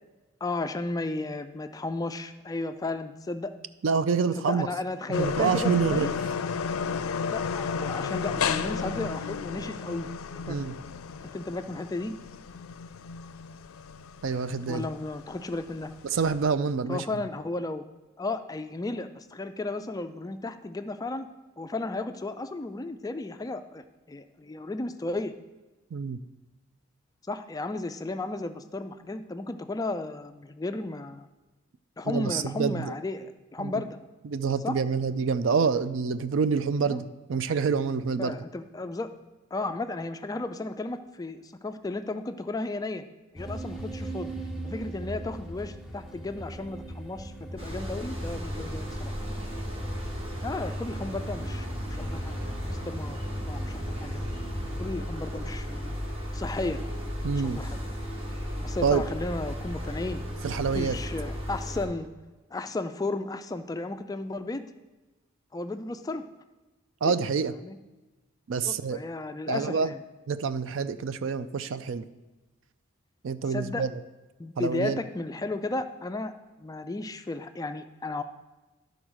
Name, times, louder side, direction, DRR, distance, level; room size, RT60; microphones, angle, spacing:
voice 1, 0.4-3.5 4.4-6.1 7.3-10.1 10.3-10.7 11.3-12.1 14.7-15.9 16.9-17.9 18.2-21.3 21.6-25.3 27.3-31.3 32.0-34.0 34.6-34.8 36.8-37.0 38.2-39.1 39.5-43.0 43.3-44.3 44.6-49.1 50.4-53.2 53.5-54.2 54.8-56.0 56.3-56.8 57.4-57.8 58.6-60.2 60.7-62.1 62.5-64.6 65.5-66.2 67.0-67.1 67.6-67.8 68.7-70.0 73.5-73.8 74.4-76.3 76.6-78.2, left 2 dB, 15° left, 9 dB, 0.3 m, -34 dB
voice 2, 3.8-4.7 5.2-6.1 10.5-10.7 14.2-14.9 16.0-17.0 25.9-26.2 32.0-32.9 33.6-33.8 34.2-38.4 57.2-57.6 58.8-59.0 60.4-61.0 67.0-67.5 68.5-69.0 69.5-69.9 70.3-72.0 73.2-74.0 74.6-75.0, right 5 dB, 65° right, 13 dB, 0.4 m, -27 dB
sound 1, 5.1-16.5, left 5 dB, 85° left, 0.4 m, -33 dB
sound 2, 43.4-55.0, right 1 dB, ahead, 0.7 m, -39 dB
sound 3, 47.6-61.9, equal, 25° right, 1.2 m, -35 dB
11.5 x 4.0 x 6.2 m, 1.1 s
head